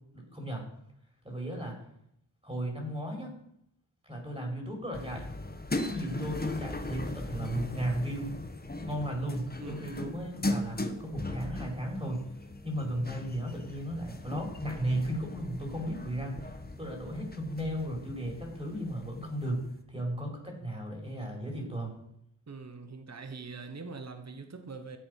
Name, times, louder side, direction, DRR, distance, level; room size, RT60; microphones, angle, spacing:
voice 1, 0.1-0.6 1.2-1.8 2.4-3.3 4.0-5.3 5.8-8.3 8.8-12.3 12.6-19.6 19.9-21.9, right 1 dB, 15° right, 5.0 m, -35 dB
sound 1, 4.9-19.7, left 2 dB, 20° left, 1.4 m, -38 dB
voice 2, 9.6-9.9 22.5-25.0, right 4 dB, 35° right, 1.4 m, -43 dB
14.0 x 8.0 x 6.7 m
wide cardioid pair, 75°, 43 cm